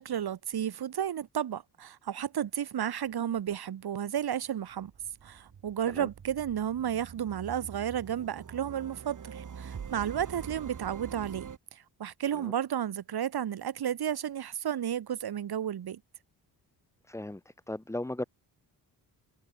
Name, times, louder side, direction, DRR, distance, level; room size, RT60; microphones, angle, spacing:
voice 1, 0.0-4.9 5.2-16.0, right 9 dB, 65° right, 2.8 m, -33 dB
sound 1, 4.3-11.6, right 7 dB, 45° right, 3.7 m, -45 dB
voice 2, 17.1-17.4 17.7-18.3, left 1 dB, 5° left, 1.4 m, -35 dB
wide cardioid pair, 135°, 41 cm